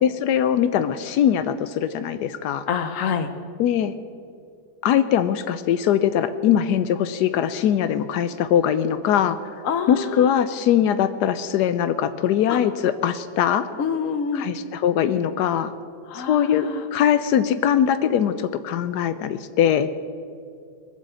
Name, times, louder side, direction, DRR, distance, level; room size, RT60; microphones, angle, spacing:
voice 1, 0.0-2.6 3.6-3.9 4.8-9.4 9.9-13.7 14.3-15.7 16.1-19.9, left 9 dB, 85° left, 12 dB, 1.2 m, -21 dB
voice 2, 2.7-3.3 9.6-10.3 12.5-12.6 13.8-14.5 16.1-16.9, left 6 dB, 55° left, 9 dB, 1.3 m, -26 dB
21.5 x 8.3 x 7.7 m, 2.4 s
omnidirectional pair, 1.7 m